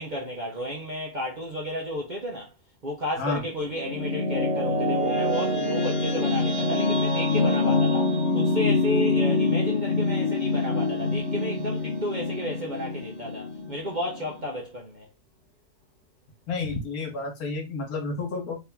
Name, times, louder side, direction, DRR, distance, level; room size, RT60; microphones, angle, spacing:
voice 1, 0.0-2.5 2.8-15.1, equal, 40° right, 0.7 m, -32 dB
sound 1, 3.4-14.4, left 3 dB, 50° left, 1.2 m, -25 dB
voice 2, 16.5-18.6, left 3 dB, 70° left, 1.7 m, -30 dB
3.5 x 2.9 x 3.5 m
omnidirectional pair, 1.7 m